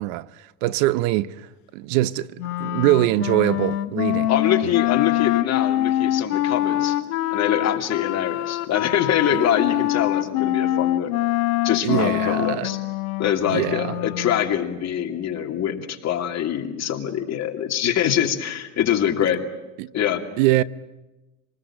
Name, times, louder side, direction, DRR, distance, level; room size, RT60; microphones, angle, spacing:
voice 1, 0.0-1.5 1.7-4.3 4.6-4.7 11.8-12.7 13.5-14.0 19.8-19.9 20.4-20.6, right 16 dB, 65° right, 0.8 m, -23 dB
Wind instrument woodwind instrument, 2.4-14.4, left 13 dB, 85° left, 1.3 m, -24 dB
voice 2, 4.3-7.0 7.3-11.1 11.6-12.8 13.2-19.4 19.9-20.2, left 10 dB, 35° left, 2.7 m, -24 dB
26.5 x 20.0 x 8.8 m
supercardioid pair, 115°, 44 cm